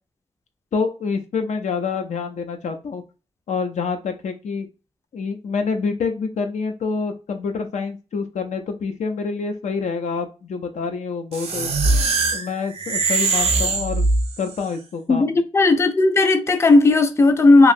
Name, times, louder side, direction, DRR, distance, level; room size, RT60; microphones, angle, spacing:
voice 1, 0.7-3.0 3.5-4.7 5.1-11.7 12.3-14.1 14.4-15.4, left 5 dB, 90° left, 0.5 m, -27 dB
sound 1, 11.3-14.6, right 3 dB, 60° right, 0.5 m, -21 dB
voice 2, 15.1-17.7, left 3 dB, 25° left, 0.4 m, -15 dB
3.0 x 2.5 x 2.5 m
wide cardioid pair, 90°, 12 cm